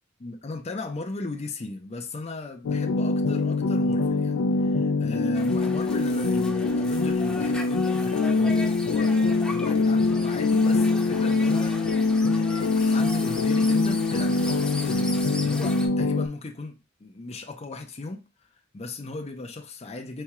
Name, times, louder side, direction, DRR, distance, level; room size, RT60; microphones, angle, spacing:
voice 1, 0.2-9.2 9.5-11.8 12.3-18.2 18.7-20.2, left 2 dB, 35° left, 0.6 m, -36 dB
sound 1, 2.6-16.3, left 3 dB, 80° left, 0.4 m, -23 dB
sound 2, 5.3-15.9, left 1 dB, 5° left, 0.8 m, -38 dB
4.2 x 2.3 x 4.7 m
head